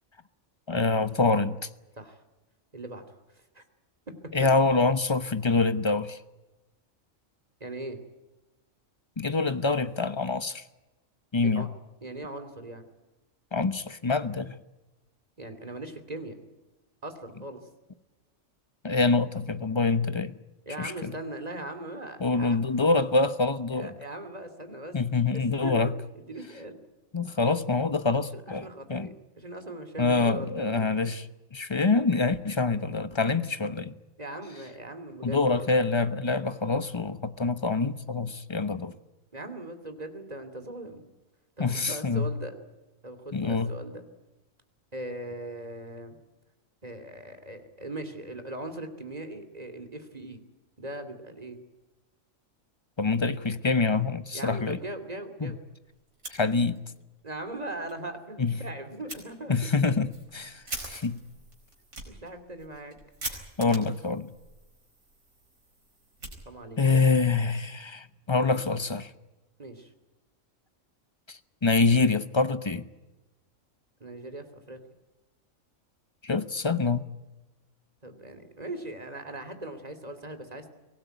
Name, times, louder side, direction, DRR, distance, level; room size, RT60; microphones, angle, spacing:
voice 1, 0.7-1.6 4.3-6.2 9.2-10.6 11.3-11.7 13.5-14.5 18.8-20.3 20.8-21.1 22.2-23.9 24.9-25.9 27.1-29.1 30.0-33.9 35.2-38.9 41.6-42.3 43.3-43.7 53.0-54.8 55.4-55.5 56.3-56.8 58.4-58.5 59.5-61.2 63.6-64.3 66.8-69.1 71.3-72.9 76.2-77.1, left 3 dB, 25° left, 0.9 m, -26 dB
voice 2, 2.7-3.6 7.6-8.0 11.4-11.7 12.0-12.9 15.4-16.3 17.0-17.7 20.7-22.6 23.7-24.9 25.5-25.8 26.1-26.8 28.3-30.9 34.2-35.6 39.3-41.0 41.6-42.5 43.0-44.1 44.9-46.2 46.8-50.4 50.8-51.6 54.3-55.6 57.2-59.6 62.1-63.0 63.3-63.4 66.4-67.0 68.5-68.6 69.6-69.9 74.0-74.8 78.0-80.7, right 1 dB, 30° right, 2.9 m, -40 dB
Fire, 56.1-57.0 57.3-57.4 57.8-57.9 59.1-59.2 59.8-66.9, right 2 dB, 85° right, 5.1 m, -43 dB
24.0 x 18.0 x 9.2 m
omnidirectional pair, 1.4 m